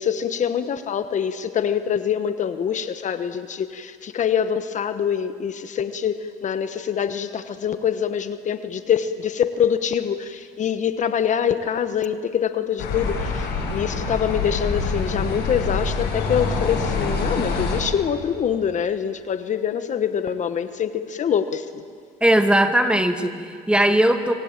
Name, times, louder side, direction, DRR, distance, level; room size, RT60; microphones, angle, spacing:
voice 1, 0.0-21.8, left 8 dB, 45° left, 10 dB, 1.2 m, -25 dB
sound 1, 12.8-17.8, left 4 dB, 80° left, 7.8 m, -25 dB
voice 2, 22.2-24.3, right 1 dB, 5° right, 7 dB, 2.2 m, -19 dB
25.5 x 25.0 x 9.0 m, 2.1 s
cardioid pair, 110°, 17 cm